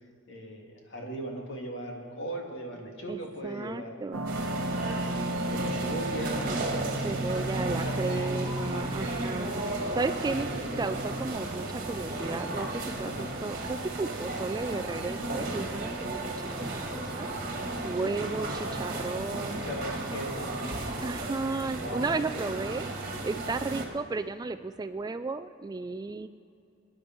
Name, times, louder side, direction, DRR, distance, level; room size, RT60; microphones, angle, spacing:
voice 1, 0.3-4.0 4.8-6.9 7.6-9.2 10.5-10.8 13.0-13.3 18.0-18.4 19.5-20.5 21.8-22.5, right 1 dB, 60° left, 0 dB, 2.3 m, -39 dB
voice 2, 3.1-4.2 7.0-9.6 9.9-10.5 10.8-12.7 13.0-13.1 13.4-17.3 17.8-19.7 21.0-22.9 23.2-26.3, right 3 dB, 20° right, 10 dB, 0.3 m, -34 dB
sound 1, 4.1-11.3, right 1 dB, 75° right, 1.0 m, -34 dB
sound 2, 4.3-23.9, right 2 dB, 45° right, 1.8 m, -34 dB
26.0 x 10.0 x 4.5 m, 2.8 s
head